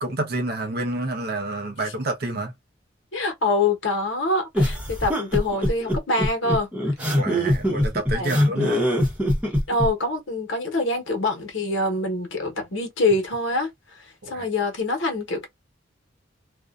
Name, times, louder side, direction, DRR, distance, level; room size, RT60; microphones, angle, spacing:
voice 1, 0.0-2.5 7.1-8.9 14.2-14.5, right 2 dB, 50° right, 0.5 m, -28 dB
voice 2, 3.1-6.7 8.1-8.4 9.7-13.7 14.3-15.5, left 2 dB, 75° left, 1.0 m, -25 dB
sound 1, 4.5-9.9, equal, 5° right, 0.8 m, -22 dB
2.4 x 2.2 x 2.3 m
head